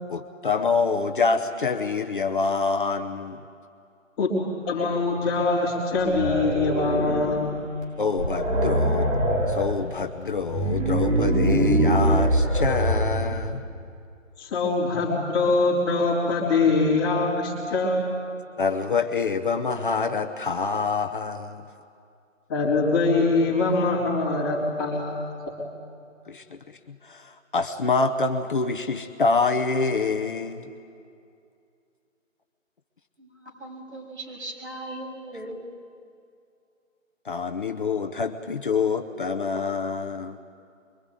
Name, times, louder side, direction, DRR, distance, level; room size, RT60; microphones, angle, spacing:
voice 1, 0.1-3.4 8.0-9.1 9.5-13.6 18.6-21.6 26.3-30.7 37.2-40.4, left 4 dB, 40° left, 5 dB, 1.0 m, -26 dB
voice 2, 4.6-7.6 14.4-18.0 22.5-25.6, left 3 dB, 15° left, -6 dB, 3.4 m, -23 dB
sound 1, 6.0-7.5 7.8-7.9 8.2-9.7 10.3-13.5, right 1 dB, 75° right, 5.8 m, -23 dB
voice 3, 33.2-35.7, right 1 dB, 55° right, -1 dB, 7.4 m, -38 dB
24.5 x 23.5 x 9.3 m, 2.4 s
hypercardioid pair, 165°, 40 cm